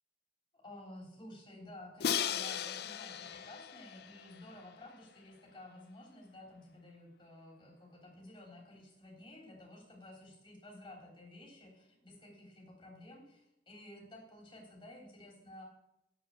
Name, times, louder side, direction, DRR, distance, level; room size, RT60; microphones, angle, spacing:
voice 1, 0.5-15.6, left 1 dB, 25° left, -1 dB, 3.8 m, -53 dB
Crash cymbal, 2.0-5.0, left 9 dB, 60° left, 0.5 m, -37 dB
8.0 x 7.7 x 6.7 m, 0.83 s
head